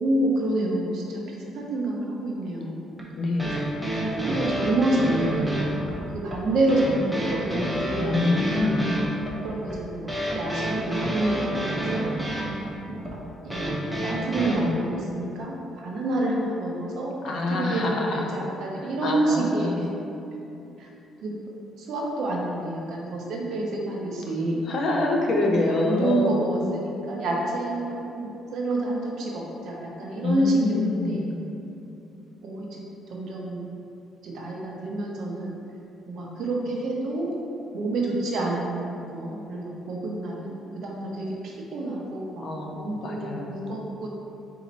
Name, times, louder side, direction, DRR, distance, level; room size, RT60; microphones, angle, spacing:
voice 1, 0.0-2.8 3.4-3.5 4.1-8.7 9.4-12.1 12.9-19.9 20.8-20.9 21.2-21.3 21.8-24.7 25.4-31.3 32.4-32.8 33.1-33.8 34.2-35.5 36.1-37.3 37.7-44.1, right 1 dB, 70° right, -2 dB, 0.8 m, -28 dB
sound 1, 3.0-14.6, right 1 dB, 5° right, 0.7 m, -28 dB
voice 2, 3.2-3.6 7.9-9.1 17.2-18.3 19.0-19.9 24.7-26.5 30.2-31.4 42.4-43.6, left 2 dB, 55° left, 1 dB, 0.6 m, -26 dB
4.1 x 2.8 x 4.1 m, 2.7 s
cardioid pair, 110°, 0 cm